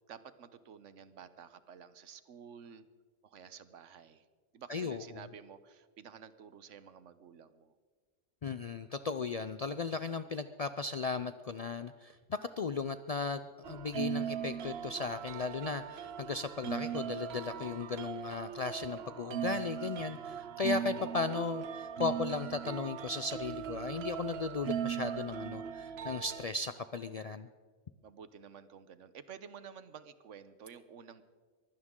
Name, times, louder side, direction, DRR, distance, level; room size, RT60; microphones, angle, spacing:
voice 1, 0.1-2.9 3.2-4.2 4.5-7.7 15.4-15.8 28.0-31.2, right 7 dB, 85° right, 13 dB, 1.2 m, -52 dB
voice 2, 4.7-5.2 8.4-27.5, left 4 dB, 60° left, 11 dB, 0.4 m, -36 dB
sound 1, 13.6-26.5, right 8 dB, 65° right, 0.9 m, -39 dB
22.5 x 16.0 x 3.7 m, 1.5 s
omnidirectional pair, 1.2 m